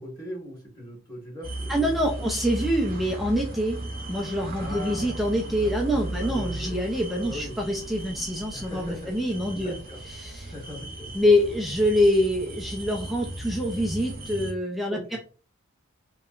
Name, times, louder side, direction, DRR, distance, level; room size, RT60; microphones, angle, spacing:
voice 1, 0.0-2.3 4.6-5.2 5.6-6.7 7.2-7.6 8.5-10.0 10.4-11.3 14.9-15.2, left 1 dB, 20° left, -5 dB, 1.5 m, -40 dB
sound 1, 1.4-14.5, right 2 dB, 40° right, 0.7 m, -36 dB
voice 2, 1.7-3.8 4.1-9.7 10.2-10.5 11.1-15.2, left 1 dB, ahead, -1 dB, 0.3 m, -25 dB
3.2 x 2.8 x 2.4 m, 0.39 s
head